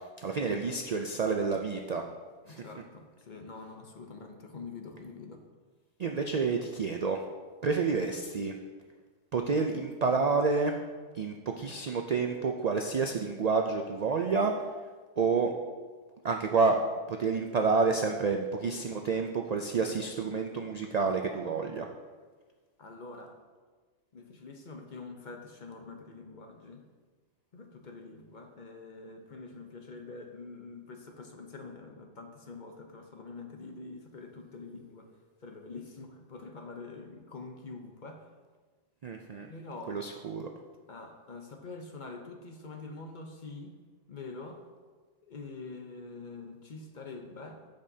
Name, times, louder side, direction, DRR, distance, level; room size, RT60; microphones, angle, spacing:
voice 1, 0.0-2.0 2.5-2.6 6.0-7.2 7.6-8.6 9.3-10.8 11.1-14.7 15.2-15.5 16.2-16.8 17.1-21.9 39.0-39.5 39.9-40.5, right 4 dB, 80° right, 3 dB, 0.3 m, -29 dB
voice 2, 2.4-5.4 22.8-23.4 24.1-26.8 27.5-35.1 35.4-38.3 39.5-40.0 40.9-43.7 44.1-44.7 45.2-47.6, left 3 dB, 45° left, 4 dB, 0.8 m, -45 dB
14.5 x 5.2 x 2.7 m, 1.4 s
omnidirectional pair, 1.3 m